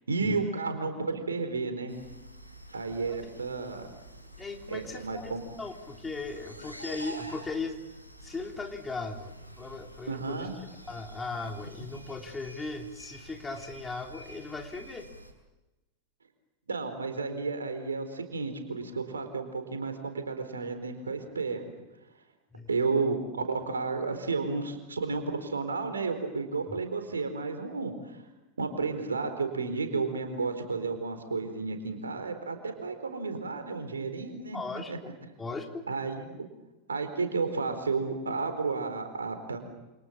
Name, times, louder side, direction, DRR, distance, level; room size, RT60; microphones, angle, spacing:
voice 1, 0.1-1.9 2.7-3.8 4.7-5.4 10.1-10.5 16.7-21.6 22.7-28.2 28.6-34.6 34.9-35.0 35.9-36.4 36.9-39.6, right 4 dB, 75° right, 7 dB, 4.3 m, -32 dB
sound 1, 1.9-15.3, right 1 dB, 90° right, 4.8 m, -48 dB
voice 2, 4.4-7.8 8.2-10.5 10.9-15.1 22.5-22.7 26.7-26.8 34.5-35.1 35.4-35.9, left 3 dB, 15° left, 3 dB, 3.3 m, -38 dB
28.5 x 27.5 x 7.3 m, 1.0 s
figure-of-eight pair, 90°, 0 cm